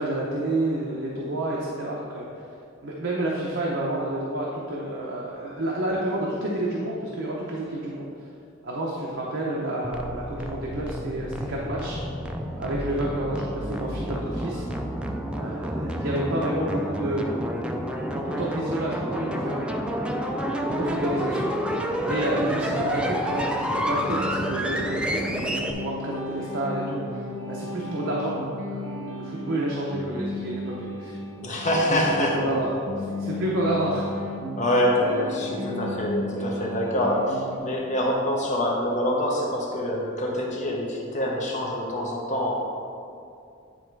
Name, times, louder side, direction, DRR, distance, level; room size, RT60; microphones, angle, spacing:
voice 1, 0.0-2.4 2.8-8.1 8.6-12.0 12.6-14.7 15.3-17.4 18.2-19.8 20.6-21.7 22.0-31.2 31.9-34.3, right 1 dB, 60° right, -4 dB, 0.8 m, -29 dB
sound 1, 9.8-25.7, equal, 5° right, 0.4 m, -29 dB
sound 2, 21.0-37.6, left 1 dB, 75° right, 1.3 m, -35 dB
voice 2, 31.3-32.6 34.6-42.5, left 1 dB, 35° left, -2 dB, 0.9 m, -25 dB
9.6 x 3.3 x 4.6 m, 2.4 s
head